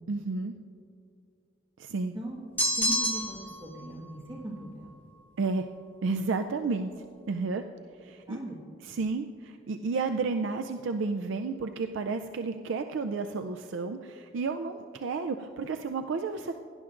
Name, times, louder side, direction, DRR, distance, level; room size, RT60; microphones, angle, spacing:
voice 1, 0.1-0.5 1.8-2.1 5.4-5.7 6.0-6.9 7.3-7.6 8.0-8.4 8.8-16.5, right 4 dB, 75° right, 7 dB, 0.4 m, -31 dB
sound 1, 2.6-3.6, equal, 10° left, 0.7 m, -27 dB
voice 2, 2.7-4.9 8.3-8.6, right 1 dB, 25° right, -4 dB, 1.6 m, -39 dB
17.0 x 11.0 x 2.5 m, 2.6 s
head